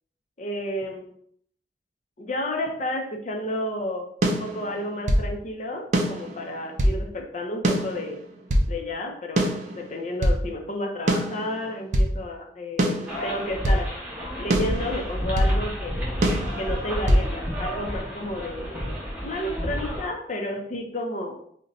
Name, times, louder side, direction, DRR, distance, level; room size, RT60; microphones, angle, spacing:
voice 1, 0.4-1.1 2.2-8.2 8.7-13.9 14.4-16.2 16.6-21.4, left 1 dB, 40° left, 2 dB, 0.5 m, -32 dB
sound 1, 4.2-5.3 5.9-7.0 7.6-8.7 9.4-10.4 11.1-12.1 12.8-13.8 14.5-15.6 16.2-17.3, equal, 40° right, 0.4 m, -24 dB
sound 2, 13.1-20.1, equal, 10° right, 0.7 m, -30 dB
2.6 x 2.1 x 3.9 m, 0.65 s
head